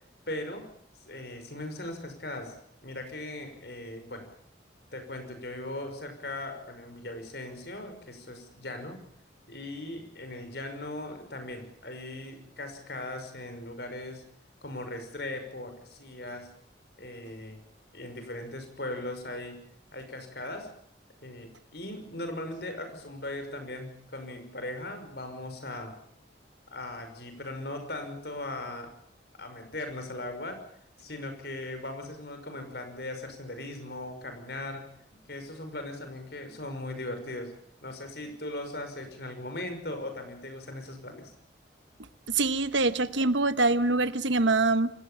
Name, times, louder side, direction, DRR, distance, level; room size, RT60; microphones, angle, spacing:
voice 1, 0.3-0.7 1.1-2.6 2.8-4.3 4.9-9.0 9.5-14.2 14.6-16.5 17.0-17.6 17.9-19.6 19.9-20.7 21.2-26.0 26.7-28.9 29.4-30.6 31.0-34.9 35.3-37.5 37.8-41.3, left 1 dB, 60° left, 7 dB, 6.0 m, -39 dB
voice 2, 42.3-44.9, right 3 dB, 80° right, 13 dB, 1.2 m, -24 dB
27.5 x 17.5 x 7.1 m, 0.64 s
head